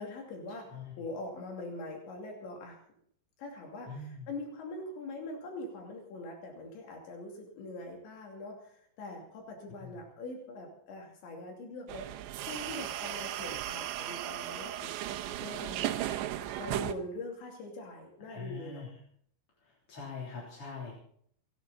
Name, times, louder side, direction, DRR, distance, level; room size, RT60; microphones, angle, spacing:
voice 1, 0.0-2.9 3.4-15.0 15.4-15.9 16.6-18.9, left 2 dB, 80° left, 0 dB, 5.0 m, -43 dB
voice 2, 3.9-4.3 9.8-10.0 18.3-18.9 19.6-20.9, left 4 dB, 35° left, -4 dB, 3.9 m, -43 dB
sound 1, 11.9-16.9, right 13 dB, 85° right, 3.1 m, -36 dB
29.5 x 10.0 x 4.1 m, 0.63 s
omnidirectional pair, 5.0 m